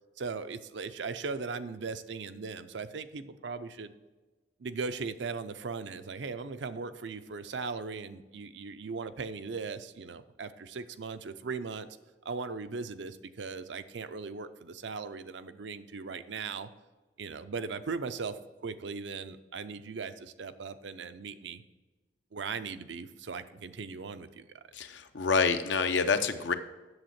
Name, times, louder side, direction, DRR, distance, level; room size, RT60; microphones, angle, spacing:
voice 1, 0.2-3.9 4.6-11.9 12.2-16.7 17.2-21.6 22.3-24.6, right 4 dB, 80° right, 11 dB, 0.5 m, -38 dB
voice 2, 24.7-26.5, left 5 dB, 85° left, 9 dB, 0.7 m, -27 dB
7.9 x 7.0 x 5.8 m, 1.2 s
head